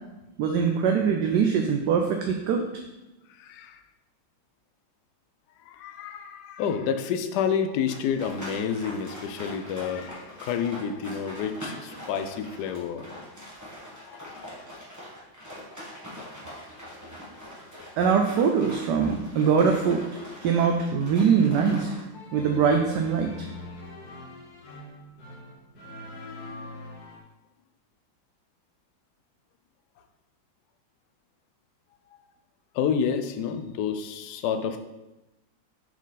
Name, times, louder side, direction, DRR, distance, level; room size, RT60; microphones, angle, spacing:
voice 1, 0.4-2.6 18.0-20.0 20.4-21.9 22.3-23.3, right 6 dB, 70° right, 3 dB, 1.0 m, -22 dB
voice 2, 3.4-3.8 5.7-13.1 14.0-14.5 32.7-34.8, left 7 dB, 70° left, 8 dB, 1.0 m, -29 dB
sound 1, 7.9-22.0, equal, 10° right, 1.4 m, -43 dB
sound 2, 22.1-27.2, left 2 dB, 55° left, 1.6 m, -42 dB
7.2 x 4.4 x 4.0 m, 1.0 s
omnidirectional pair, 2.2 m